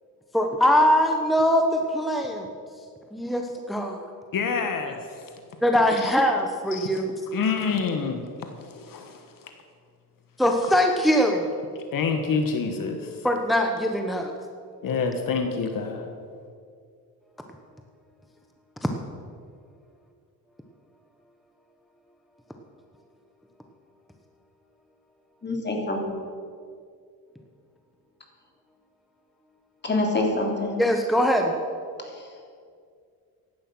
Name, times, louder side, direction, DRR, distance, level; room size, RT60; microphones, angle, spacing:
voice 1, 0.3-2.5 3.1-4.0 5.6-7.1 10.4-11.5 13.2-14.3 18.8-18.9 30.8-31.6, equal, ahead, 3 dB, 1.1 m, -22 dB
voice 2, 4.3-5.3 6.0-6.1 6.7-7.0 7.3-9.5 11.9-13.3 14.8-16.1, left 5 dB, 60° left, 5 dB, 1.5 m, -28 dB
voice 3, 25.4-26.2 29.8-30.7, left 2 dB, 30° left, 1 dB, 3.1 m, -25 dB
15.5 x 11.0 x 6.2 m, 2.2 s
cardioid pair, 105°, 38 cm